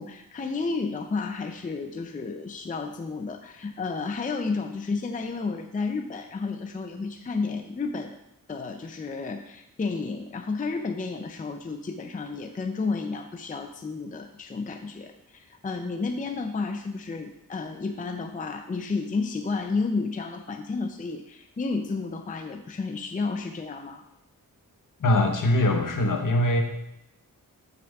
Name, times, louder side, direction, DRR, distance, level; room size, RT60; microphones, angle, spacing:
voice 1, 0.0-8.2 8.5-24.0, left 4 dB, 25° left, 6 dB, 0.4 m, -31 dB
voice 2, 25.0-26.6, left 1 dB, 60° left, 3 dB, 1.1 m, -22 dB
6.0 x 4.6 x 6.4 m, 0.84 s
wide cardioid pair, 140°, 36 cm